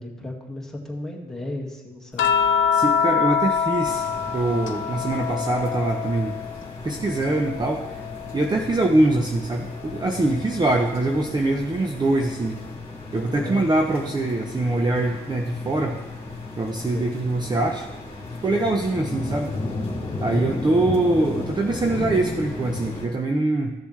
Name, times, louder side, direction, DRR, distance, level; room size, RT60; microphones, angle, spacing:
voice 1, 0.0-2.3 13.3-13.6 16.8-17.1 20.2-20.5, left 1 dB, ahead, -1 dB, 1.8 m, -34 dB
sound 1, 2.2-6.7 7.0-8.7 10.2-10.3, left 7 dB, 70° left, 0.8 m, -25 dB
voice 2, 2.7-4.1 4.3-6.3 6.8-8.0 8.3-12.6 13.1-16.0 16.6-17.9 18.4-19.5 20.2-23.7, right 2 dB, 20° right, 3 dB, 0.7 m, -23 dB
sound 2, 3.8-23.1, left 3 dB, 30° left, 2.4 m, -35 dB
14.5 x 6.9 x 3.2 m, 1.0 s
cardioid pair, 90°, 20 cm